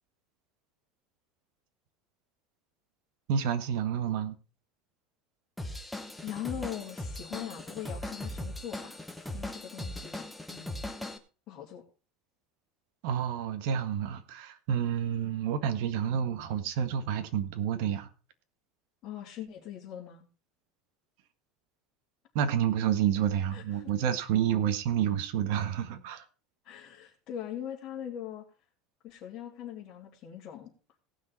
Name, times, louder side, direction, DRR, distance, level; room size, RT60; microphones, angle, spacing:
voice 1, 3.3-4.3 13.0-18.1 22.3-26.2, right 9 dB, 65° right, 1.6 m, -29 dB
Drum kit / Drum, 5.6-11.2, left 1 dB, 5° left, 1.1 m, -39 dB
voice 2, 6.2-9.0 9.3-10.9 11.5-11.8 19.0-20.2 23.5-23.9 26.6-28.4 29.0-30.7, left 10 dB, 40° left, 3.1 m, -41 dB
18.0 x 6.3 x 4.2 m
supercardioid pair, 155°, 0 cm